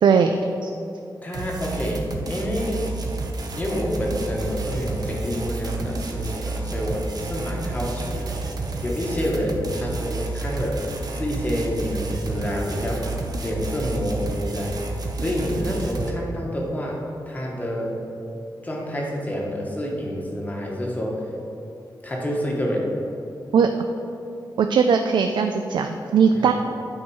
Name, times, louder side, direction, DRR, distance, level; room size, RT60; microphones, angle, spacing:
voice 1, 0.0-0.7 23.5-23.8 24.6-26.5, right 6 dB, 80° right, 6 dB, 0.4 m, -19 dB
voice 2, 1.2-2.8 3.6-8.4 8.8-10.8 11.1-13.1 13.4-14.8 15.2-17.0 17.3-18.0 18.6-21.2 22.0-22.9 26.3-26.5, equal, 20° left, -2 dB, 1.2 m, -28 dB
sound 1, 1.3-16.1, right 3 dB, 55° right, 0.7 m, -30 dB
9.7 x 4.6 x 4.6 m, 2.7 s
wide cardioid pair, 175°, 8 cm